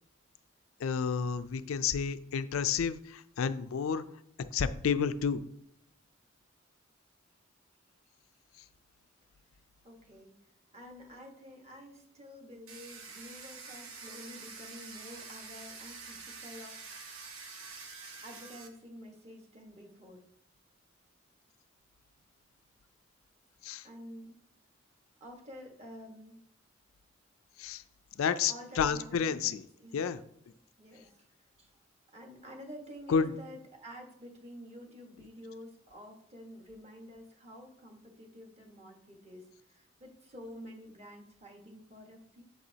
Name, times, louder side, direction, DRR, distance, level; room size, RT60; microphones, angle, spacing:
voice 1, 0.8-4.0 4.5-5.4 23.6-23.9 27.6-27.8 28.2-29.6 29.9-30.2 33.1-33.3, left 6 dB, 90° left, 12 dB, 0.4 m, -30 dB
voice 2, 9.8-10.3 10.7-17.2 18.2-20.2 23.8-24.4 25.2-26.4 28.5-29.5 29.8-30.0 30.5-31.8 32.1-42.4, equal, 30° right, 1 dB, 1.3 m, -50 dB
Domestic sounds home sounds, 12.7-18.7, right 4 dB, 90° right, 1.1 m, -47 dB
7.9 x 7.7 x 2.8 m, 0.76 s
head